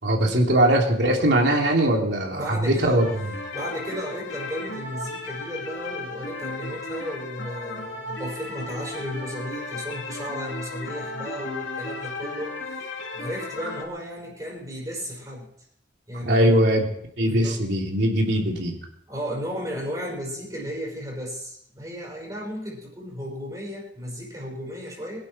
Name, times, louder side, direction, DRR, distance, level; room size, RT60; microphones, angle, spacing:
voice 1, 0.0-3.1 16.2-16.9 17.2-18.8, right 1 dB, 70° right, 0 dB, 3.4 m, -21 dB
voice 2, 2.3-3.1 3.5-15.5 16.1-16.7 17.2-17.6 19.1-25.3, equal, 20° right, -3 dB, 5.0 m, -34 dB
sound 1, 3.0-13.8, left 2 dB, 85° left, 3.3 m, -35 dB
23.5 x 11.0 x 4.5 m, 0.74 s
head